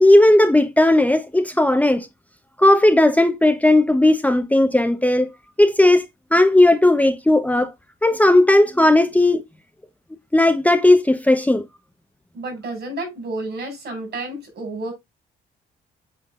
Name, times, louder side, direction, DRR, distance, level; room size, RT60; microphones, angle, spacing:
voice 1, 0.0-2.1 2.6-5.3 5.6-6.0 6.3-7.7 8.0-9.4 10.3-11.6, left 1 dB, 5° left, 0.8 m, -15 dB
voice 2, 12.3-14.9, right 2 dB, 60° right, 4.9 m, -30 dB
8.3 x 3.8 x 3.6 m
cardioid pair, 90°, 20 cm